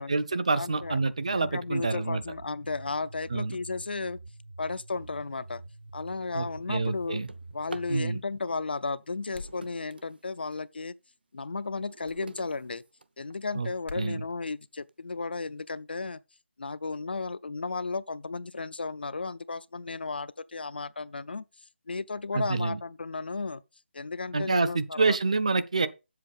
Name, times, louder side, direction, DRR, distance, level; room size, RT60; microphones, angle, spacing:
voice 1, 0.0-2.2 3.3-3.6 6.3-7.3 7.9-8.2 13.5-13.7 14.0-14.2 22.3-22.8 24.3-25.9, right 3 dB, 35° right, 0.6 m, -27 dB
voice 2, 0.5-1.0 1.3-4.2 4.6-5.6 5.9-7.2 7.5-10.9 11.3-12.8 13.2-16.2 16.6-21.4 21.9-23.6 23.9-25.2, left 4 dB, 55° left, 0.5 m, -34 dB
sound 1, 0.6-8.0, right 2 dB, 80° right, 1.5 m, -47 dB
Drawer open or close, 5.3-5.6 6.0-8.0 9.1-10.7 11.2-13.6 14.3-14.4 14.9-15.0 15.3-15.7, right 3 dB, 55° right, 0.9 m, -49 dB
sound 2, 9.3-9.7 12.0-12.2 13.8-14.1, left 3 dB, 75° left, 1.6 m, -43 dB
7.6 x 7.6 x 5.3 m
hypercardioid pair, 180°, 6 cm